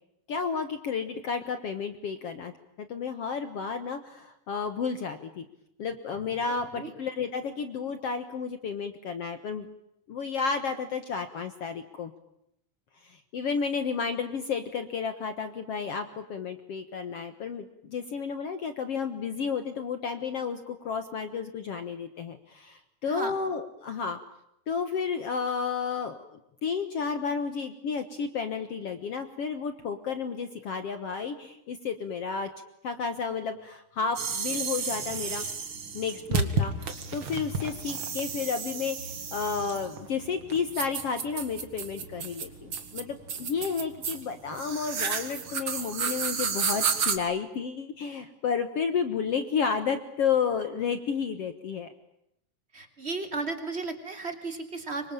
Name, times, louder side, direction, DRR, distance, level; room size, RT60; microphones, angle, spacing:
voice 1, 0.3-2.5 2.8-5.5 5.8-9.7 10.1-12.1 13.0-24.2 24.7-32.5 32.8-35.4 35.9-51.9, left 6 dB, 55° left, 9 dB, 1.9 m, -32 dB
sound 1, 34.2-47.2, right 5 dB, 40° right, 2.6 m, -32 dB
voice 2, 52.7-55.1, right 3 dB, 20° right, 7 dB, 3.2 m, -34 dB
26.0 x 24.5 x 9.0 m, 0.80 s
omnidirectional pair, 3.9 m